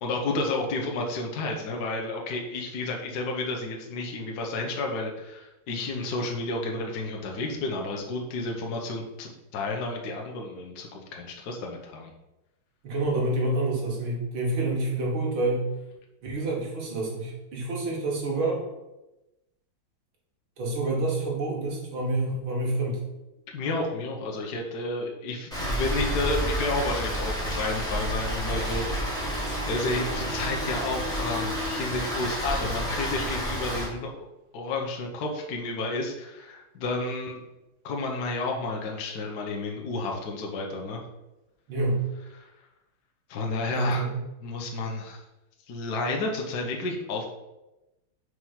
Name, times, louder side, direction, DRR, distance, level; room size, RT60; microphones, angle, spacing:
voice 1, 0.0-12.1 23.5-28.8 29.1-34.3 34.5-37.4 37.8-41.0 42.4-42.5 43.3-44.1 44.4-45.2 45.7-47.3, left 2 dB, 60° left, 0 dB, 1.4 m, -31 dB
voice 2, 12.8-15.7 16.2-18.6 20.6-23.0 41.7-42.0 43.7-44.2, right 2 dB, 85° right, -3 dB, 2.4 m, -28 dB
Rain, 25.5-33.8, equal, ahead, 2.2 m, -30 dB
4.8 x 4.6 x 5.6 m, 0.99 s
omnidirectional pair, 2.2 m